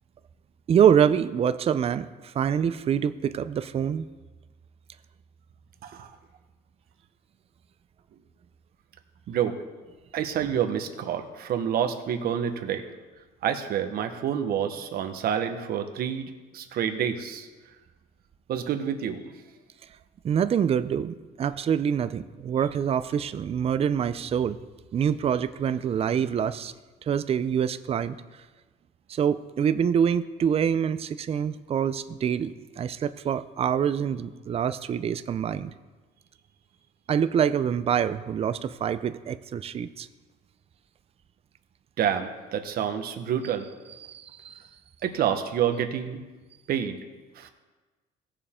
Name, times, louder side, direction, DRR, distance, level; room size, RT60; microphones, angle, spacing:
voice 1, 0.7-4.0 20.2-24.6 24.9-26.7 27.1-28.2 29.1-35.7 37.1-40.1 44.0-44.5, right 8 dB, 35° right, 13 dB, 0.5 m, -25 dB
voice 2, 9.3-9.6 10.1-12.8 13.4-17.5 18.5-19.3 42.0-43.7 45.0-46.2 46.7-47.0 47.3-47.5, right 9 dB, 65° right, 6 dB, 1.2 m, -28 dB
17.5 x 6.8 x 3.7 m, 1.3 s
cardioid pair, 110°, 17 cm